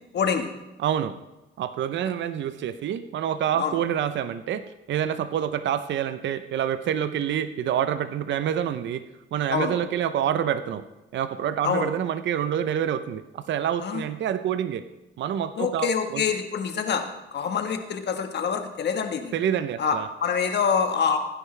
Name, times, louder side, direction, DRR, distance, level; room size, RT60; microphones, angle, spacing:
voice 1, 0.1-0.5 3.6-3.8 9.5-9.8 11.6-11.9 13.8-14.0 15.6-17.0 17.3-19.3 19.8-21.2, left 6 dB, 60° left, 6 dB, 1.4 m, -26 dB
voice 2, 0.8-1.1 1.6-9.0 9.3-10.8 11.1-14.8 15.2-16.2 19.3-20.1, right 9 dB, 65° right, 12 dB, 0.7 m, -27 dB
16.5 x 9.9 x 3.3 m, 1.0 s
cardioid pair, 90°, 20 cm